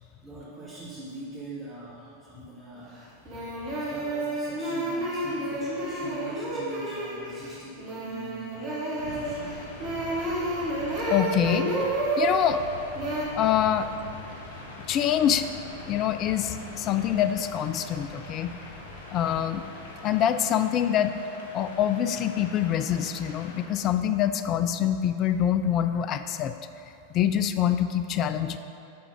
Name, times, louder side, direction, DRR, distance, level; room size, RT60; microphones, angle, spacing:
voice 1, 0.2-3.1 3.9-9.6, right 1 dB, 20° right, -10 dB, 1.6 m, -42 dB
sound 1, 2.8-2.9 3.3-12.5 13.0-13.3, right 2 dB, 35° right, 1.6 m, -30 dB
sound 2, 8.9-23.7, left 2 dB, 65° left, 1.2 m, -43 dB
voice 2, 11.1-11.7 12.2-12.6 13.3-13.9 14.9-15.4 15.9-18.5 19.1-19.6 20.0-21.1 21.5-26.5 27.1-28.6, left 10 dB, 35° left, 10 dB, 0.3 m, -25 dB
9.5 x 3.6 x 5.0 m, 2.6 s
figure-of-eight pair, 90°, 0 cm